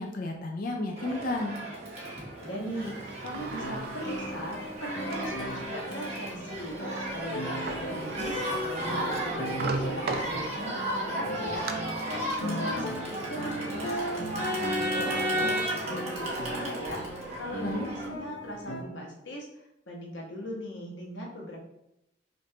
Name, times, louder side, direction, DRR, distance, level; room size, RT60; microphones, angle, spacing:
voice 1, 0.0-1.6 12.4-12.9 17.6-17.9, left 2 dB, 45° left, 2 dB, 0.4 m, -32 dB
Crowd, 1.0-18.1, right 1 dB, 35° right, 1.0 m, -34 dB
voice 2, 2.4-6.8 7.1-11.7 12.1-17.0 17.4-21.6, equal, 65° left, -1 dB, 1.0 m, -39 dB
Sliding door, 2.8-5.4 6.0-6.1 7.4-7.5 7.7-10.8 11.3-11.7, right 3 dB, 50° right, 0.4 m, -37 dB
sound 1, 3.4-18.8, right 1 dB, 90° left, 0.8 m, -38 dB
5.3 x 2.6 x 2.8 m, 0.82 s
head